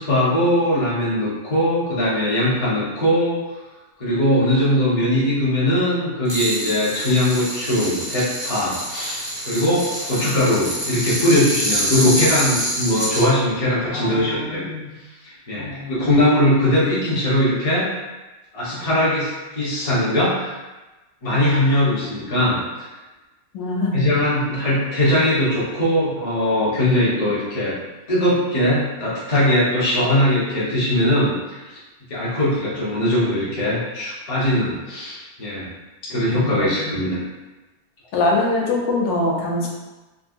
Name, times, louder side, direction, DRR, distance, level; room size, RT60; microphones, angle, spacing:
voice 1, 0.0-3.4 4.0-14.6 15.2-17.9 18.5-20.5 21.2-22.6 23.9-27.8 28.1-31.8 32.1-35.7 36.0-37.2, left 1 dB, 30° left, -8 dB, 0.7 m, -20 dB
sound 1, 6.3-13.2, equal, 15° right, 0.4 m, -26 dB
voice 2, 13.9-14.9 15.5-16.1 23.5-24.1 36.3-37.0 38.1-39.7, left 2 dB, 90° left, -2 dB, 1.4 m, -24 dB
3.7 x 2.2 x 2.5 m, 1.1 s
omnidirectional pair, 1.9 m